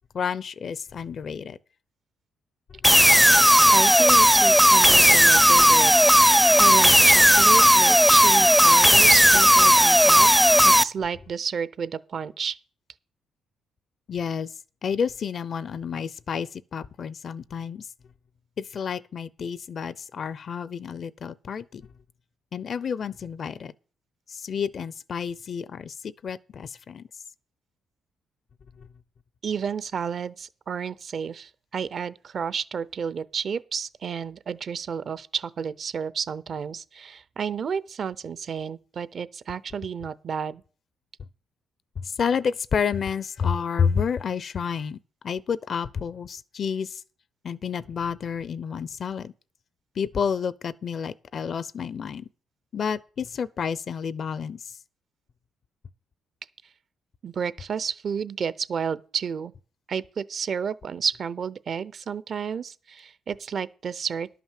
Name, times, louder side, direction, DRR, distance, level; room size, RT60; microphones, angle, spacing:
voice 1, 0.1-1.6 14.1-14.5 14.8-17.9 18.6-21.8 22.5-23.7 24.3-27.0 28.8-28.9 42.0-45.0 45.2-47.0 47.4-49.3 50.0-52.3 52.7-54.7, left 6 dB, 50° left, 0.6 m, -30 dB
sound 1, 2.8-10.8, equal, ahead, 0.5 m, -15 dB
voice 2, 3.4-10.3 10.6-12.6 29.4-40.6 57.2-59.5 59.9-64.3, right 6 dB, 50° right, 0.6 m, -31 dB
11.0 x 5.8 x 7.4 m
cardioid pair, 90°, 0 cm